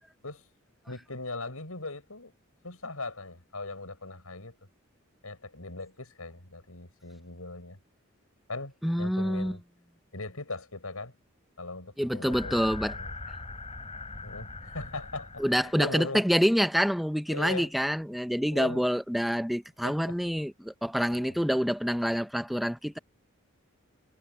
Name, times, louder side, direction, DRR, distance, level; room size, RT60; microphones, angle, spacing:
voice 1, 0.9-2.3 2.6-4.6 5.2-7.8 8.5-9.7 10.1-11.2 11.6-13.1 14.2-16.2 17.3-17.7 18.5-18.9 19.8-20.2 21.1-21.4, left 2 dB, 85° left, 6.6 m, -39 dB
voice 2, 8.8-9.6 12.0-12.9 13.3-13.4 15.4-23.0, equal, ahead, 0.6 m, -27 dB
sound 1, 12.3-15.8, left 3 dB, 30° left, 5.6 m, -41 dB
head